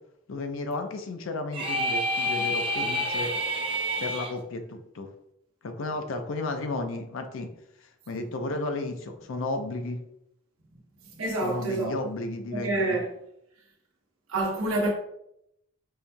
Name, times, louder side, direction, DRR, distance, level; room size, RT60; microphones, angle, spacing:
voice 1, 0.3-3.3 4.0-5.1 5.6-7.5 7.8-10.0 11.4-13.0, left 2 dB, 70° left, 0.5 m, -33 dB
sound 1, 1.5-4.3, equal, 25° right, 0.6 m, -28 dB
voice 2, 11.1-12.0 12.5-13.1 14.3-14.9, right 2 dB, 80° right, 0.9 m, -27 dB
5.4 x 2.2 x 2.6 m
head